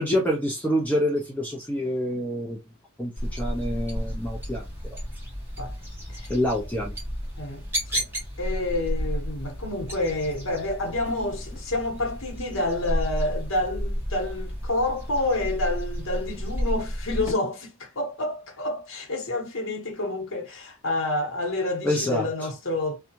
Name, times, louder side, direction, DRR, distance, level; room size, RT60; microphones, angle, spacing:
voice 1, 0.0-2.6 3.0-4.6 6.3-7.0 21.8-22.3, equal, 5° left, 0.6 m, -26 dB
sound 1, 3.2-17.3, equal, 10° right, 1.1 m, -32 dB
voice 2, 7.4-8.1 8.4-23.0, left 2 dB, 65° left, 1.0 m, -29 dB
2.7 x 2.3 x 2.9 m
head